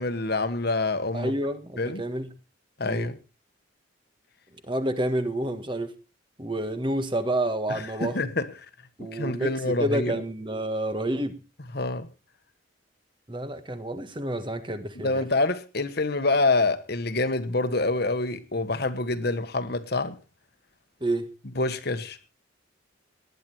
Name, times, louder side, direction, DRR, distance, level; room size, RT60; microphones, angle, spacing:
voice 1, 0.0-1.3 1.8-2.0 2.8-3.2 7.7-8.5 9.1-10.1 11.7-12.1 15.0-20.2 21.5-22.2, left 2 dB, 55° left, 1.4 m, -26 dB
voice 2, 1.1-2.3 2.8-3.1 4.6-6.0 6.4-8.2 9.0-11.4 13.3-15.2 21.0-21.3, right 1 dB, 25° right, 1.6 m, -29 dB
19.0 x 11.0 x 4.5 m
head